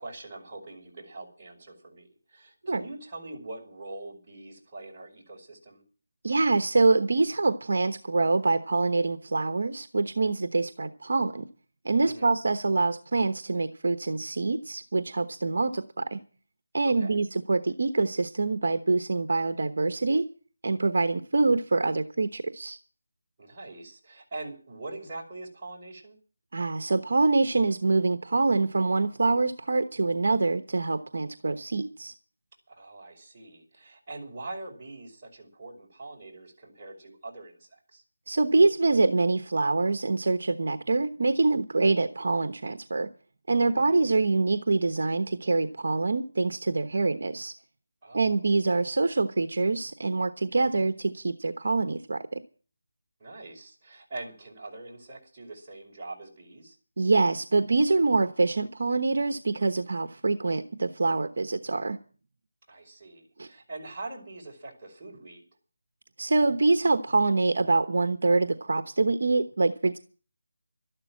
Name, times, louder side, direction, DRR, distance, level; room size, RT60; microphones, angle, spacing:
voice 1, 0.0-5.8 12.0-12.3 16.8-17.2 23.4-26.2 32.7-38.0 43.7-44.0 48.0-48.5 53.2-56.8 62.7-65.4, right 2 dB, 20° right, -5 dB, 5.3 m, -43 dB
voice 2, 6.2-11.4 11.8-16.2 16.7-20.2 20.6-22.8 26.5-32.1 38.3-43.1 43.5-47.5 48.1-52.4 57.0-62.0 63.4-63.5 66.2-70.0, right 3 dB, 60° right, 9 dB, 1.1 m, -25 dB
13.0 x 11.5 x 7.5 m, 0.40 s
figure-of-eight pair, 170°, 0 cm